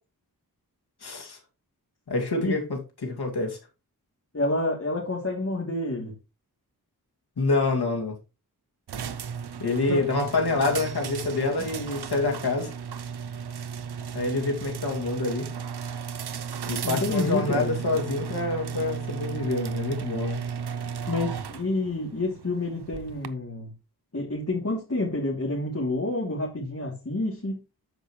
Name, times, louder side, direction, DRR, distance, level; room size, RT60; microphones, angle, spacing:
voice 1, 1.0-1.4 2.1-3.6 7.4-8.1 9.6-12.7 14.1-15.5 16.7-20.4, left 3 dB, 80° left, 2.4 m, -27 dB
voice 2, 4.3-6.1 9.9-10.0 16.8-17.7 21.1-23.7 24.1-27.6, left 2 dB, 40° left, 3.0 m, -28 dB
sound 1, 8.9-23.3, right 7 dB, 85° right, 0.8 m, -35 dB
13.0 x 5.2 x 3.1 m
cardioid pair, 45°, 38 cm